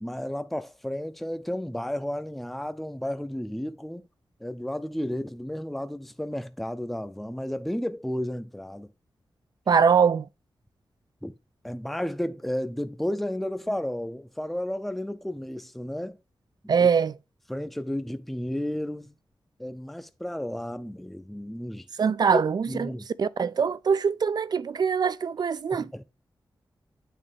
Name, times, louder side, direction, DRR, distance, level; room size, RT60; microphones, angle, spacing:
voice 1, 0.0-4.1 4.4-8.9 11.2-11.3 11.6-16.2 16.8-16.9 17.5-19.2 19.6-21.9 22.3-22.4 22.7-23.1 25.7-26.0, left 1 dB, ahead, 0.5 m, -32 dB
voice 2, 9.7-10.3 16.7-17.1 22.0-25.9, right 6 dB, 55° right, 0.4 m, -23 dB
8.7 x 3.3 x 3.3 m
cardioid pair, 70°, 8 cm